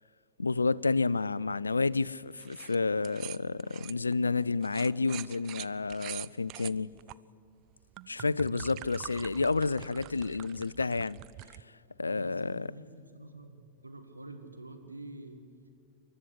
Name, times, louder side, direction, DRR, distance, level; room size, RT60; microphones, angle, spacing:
voice 1, 0.4-6.9 8.1-11.2 12.0-12.7, left 3 dB, 80° left, 0.4 m, -30 dB
sound 1, 2.4-2.8 3.0-7.1 7.7-11.6, right 16 dB, 40° right, 0.5 m, -45 dB
voice 2, 12.0-15.4, right 2 dB, 85° right, 1.9 m, -47 dB
28.0 x 12.5 x 8.3 m
figure-of-eight pair, 90°, 0 cm